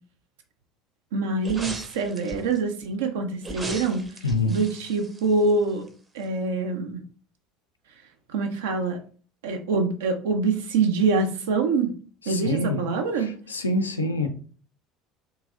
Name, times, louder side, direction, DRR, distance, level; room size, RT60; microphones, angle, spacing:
voice 1, 1.1-4.0 4.5-5.9 6.1-7.0 8.3-9.0 9.4-11.9 12.3-13.3, right 4 dB, 65° right, 5 dB, 0.4 m, -25 dB
sound 1, 1.4-2.6 3.4-5.9 6.2-6.3, right 2 dB, 20° right, 0.6 m, -38 dB
voice 2, 4.2-4.6 12.3-12.9 13.2-14.3, left 2 dB, 80° left, 6 dB, 0.3 m, -26 dB
2.9 x 2.6 x 2.3 m, 0.41 s
figure-of-eight pair, 65°, 0 cm